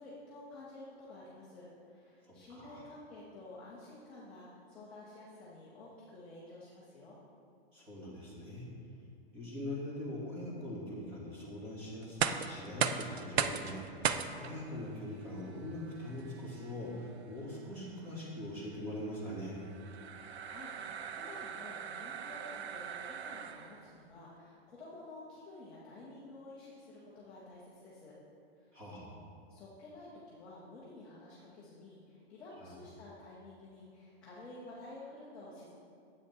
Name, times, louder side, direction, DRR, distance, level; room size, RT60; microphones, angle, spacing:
voice 1, 0.0-7.2 20.4-20.7 21.1-28.1 28.6-28.8 29.5-35.7, left 2 dB, 5° left, -11 dB, 0.4 m, -51 dB
voice 2, 2.3-2.8 7.7-8.7 9.3-19.6 28.7-29.2 32.5-32.8, left 1 dB, 20° right, -6 dB, 2.4 m, -42 dB
sound 1, 12.0-23.9, right 7 dB, 85° right, 0.7 m, -39 dB
10.5 x 8.2 x 4.4 m, 2.5 s
supercardioid pair, 180°, 31 cm